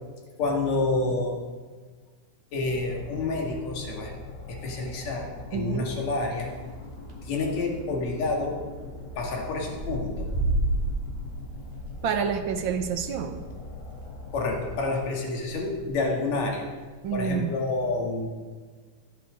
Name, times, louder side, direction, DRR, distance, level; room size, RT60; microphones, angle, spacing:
voice 1, 0.4-1.4 2.5-4.1 4.5-6.5 7.2-8.6 9.2-10.3 14.3-16.7 17.1-18.3, left 3 dB, 65° left, 0 dB, 3.3 m, -28 dB
sound 1, 2.6-14.8, left 2 dB, 40° left, 2.6 m, -42 dB
voice 2, 5.5-5.9 12.0-13.4 17.0-17.5, right 7 dB, 75° right, 6 dB, 1.1 m, -28 dB
sound 2, 6.2-6.7 7.0-7.3 7.6-7.7 7.8-7.9 8.7-9.3 9.5-14.6 15.0-15.1 15.3-15.9 16.5-17.2, right 2 dB, 15° right, 2.5 m, -32 dB
16.5 x 11.0 x 5.1 m, 1.5 s
omnidirectional pair, 3.4 m